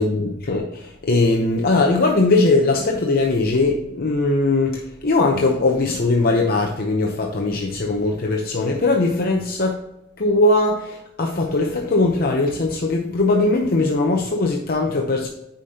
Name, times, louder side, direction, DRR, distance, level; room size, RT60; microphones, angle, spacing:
voice 1, 0.0-9.8 10.2-15.3, left 2 dB, 45° left, 1 dB, 0.7 m, -20 dB
9.1 x 5.1 x 2.8 m, 0.89 s
head